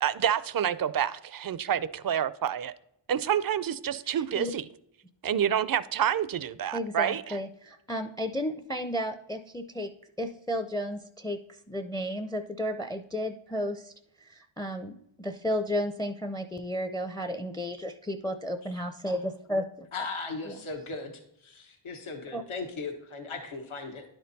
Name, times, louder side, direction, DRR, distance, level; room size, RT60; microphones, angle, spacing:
voice 1, 0.0-2.7 3.1-4.7 5.2-7.4, right 9 dB, 45° right, 15 dB, 0.4 m, -28 dB
voice 2, 4.1-4.5 6.7-9.9 10.2-11.4 11.7-13.9 14.2-19.9 20.5-20.6 22.3-22.4, equal, 10° left, 8 dB, 0.5 m, -33 dB
voice 3, 19.9-21.1 21.4-24.0, left 4 dB, 75° left, 3 dB, 1.1 m, -37 dB
10.5 x 4.4 x 4.0 m, 0.77 s
wide cardioid pair, 60°, 49 cm